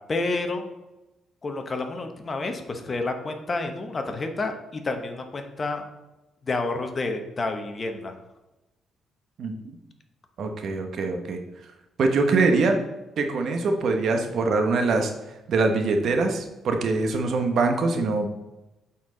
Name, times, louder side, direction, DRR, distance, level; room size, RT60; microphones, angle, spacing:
voice 1, 0.1-0.6 1.4-5.8 6.4-8.1, left 3 dB, 35° left, 5 dB, 0.9 m, -29 dB
voice 2, 10.4-11.4 12.0-12.8 13.2-15.1 15.5-18.3, right 3 dB, 65° right, 5 dB, 0.9 m, -23 dB
8.4 x 4.4 x 3.8 m, 1.0 s
cardioid pair, 90°, 0 cm